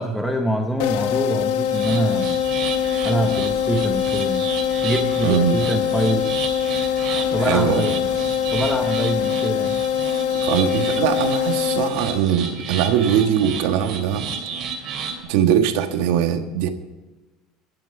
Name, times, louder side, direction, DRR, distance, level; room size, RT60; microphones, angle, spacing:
voice 1, 0.0-2.4 3.0-4.5 4.8-6.3 7.3-8.0 8.5-9.9, right 1 dB, 5° left, 3 dB, 0.9 m, -25 dB
sound 1, 0.8-12.5, left 9 dB, 75° left, 1.0 m, -23 dB
sound 2, 1.7-15.2, right 5 dB, 40° right, 2.7 m, -32 dB
sound 3, 2.1-9.3, right 4 dB, 25° right, 1.5 m, -44 dB
voice 2, 5.2-5.6 7.4-7.8 10.4-14.3 15.3-16.7, right 9 dB, 80° right, 7 dB, 1.4 m, -21 dB
13.5 x 10.5 x 4.8 m, 1.2 s
cardioid pair, 155°, 0 cm